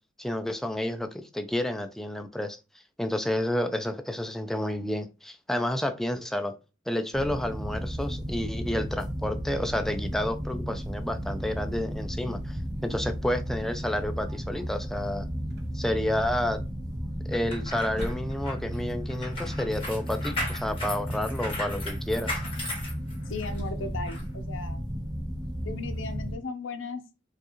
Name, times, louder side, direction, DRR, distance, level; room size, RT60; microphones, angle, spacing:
voice 1, 0.2-2.6 3.0-6.6 6.9-15.3 15.7-16.6 17.3-22.3, left 1 dB, ahead, 0.3 m, -30 dB
sound 1, 7.1-26.4, equal, 20° right, 0.7 m, -34 dB
sound 2, 15.5-15.7 17.7-18.7, equal, 55° right, 0.8 m, -39 dB
sound 3, 17.3-23.6 24.1-24.2, left 1 dB, 30° left, 1.8 m, -36 dB
voice 2, 23.2-24.8 25.6-27.0, left 3 dB, 80° left, 0.7 m, -36 dB
4.6 x 2.4 x 3.0 m
head